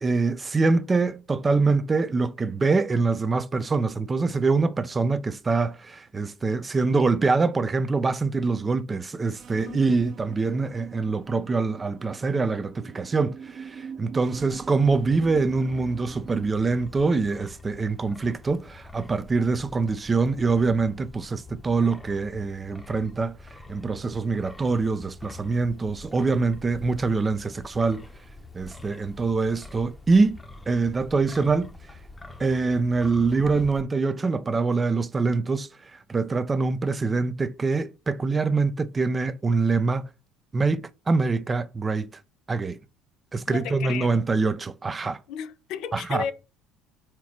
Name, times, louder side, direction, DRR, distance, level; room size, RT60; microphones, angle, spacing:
voice 1, 0.0-23.4 23.7-28.1 28.5-30.4 30.7-31.7 32.4-35.7 36.1-40.1 40.5-42.1 42.5-42.8 43.3-45.2 45.9-46.2, right 4 dB, 25° right, 0.6 m, -24 dB
sound 1, 9.3-16.5, right 6 dB, 50° right, 1.1 m, -42 dB
Wind, 14.8-33.8, left 2 dB, 15° left, 1.0 m, -46 dB
voice 2, 43.5-44.2 45.3-46.3, left 8 dB, 65° left, 0.7 m, -34 dB
4.6 x 4.5 x 5.9 m
hypercardioid pair, 75°, 0 cm